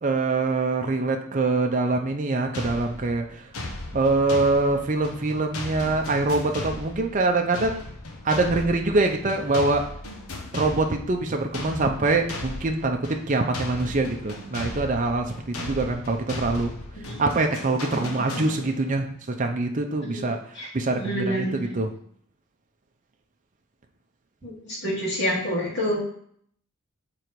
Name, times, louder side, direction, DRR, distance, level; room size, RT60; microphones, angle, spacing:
voice 1, 0.0-3.5 3.9-7.8 8.2-9.9 10.5-16.7 17.2-21.3 21.8-21.9, right 3 dB, 35° right, 3 dB, 0.6 m, -24 dB
sound 1, 2.5-19.0, left 2 dB, 75° left, 1.0 m, -37 dB
voice 2, 21.0-21.7 24.4-26.0, equal, 55° left, -6 dB, 2.9 m, -28 dB
6.7 x 3.8 x 4.6 m, 0.64 s
head